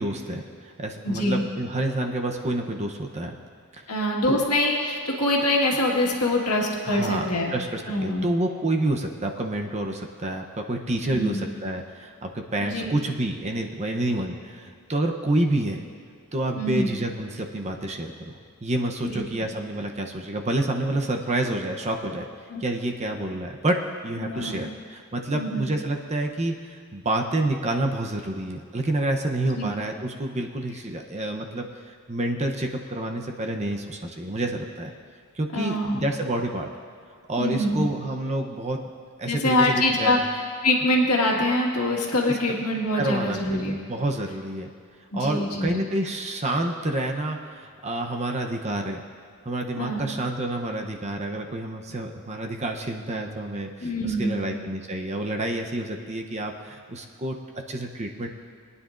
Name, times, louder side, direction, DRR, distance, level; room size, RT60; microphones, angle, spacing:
voice 1, 0.0-3.4 3.8-3.9 4.3-4.4 6.8-7.2 7.5-15.8 16.3-22.3 22.6-34.9 35.4-36.7 37.3-38.8 39.2-40.2 42.9-44.7 45.1-49.0 49.4-57.4 57.7-58.3, right 1 dB, 30° right, 3 dB, 0.7 m, -28 dB
voice 2, 1.0-1.4 3.9-7.5 7.9-8.2 11.0-11.4 12.6-13.0 16.6-16.9 19.0-19.2 22.5-22.6 24.2-24.7 25.3-25.7 29.6-29.7 35.5-36.0 37.4-37.9 39.3-40.2 40.6-43.8 45.1-45.8 49.8-50.1 53.8-54.4, left 1 dB, 90° left, -1 dB, 1.7 m, -24 dB
21.5 x 9.7 x 2.5 m, 2.2 s
head